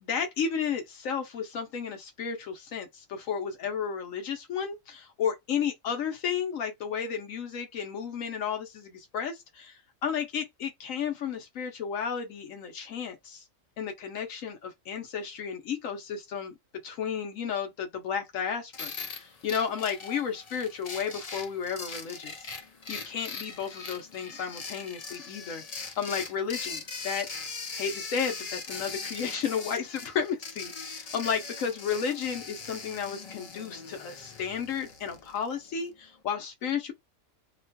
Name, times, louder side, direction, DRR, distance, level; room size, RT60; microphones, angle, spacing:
voice 1, 0.0-13.4 13.8-16.5 16.8-22.5 22.9-25.6 26.0-27.3 27.8-36.9, left 7 dB, 80° left, 1.2 m, -33 dB
sound 1, 18.7-35.7, left 4 dB, 55° left, 0.4 m, -41 dB
2.9 x 2.1 x 2.7 m
omnidirectional pair, 1.4 m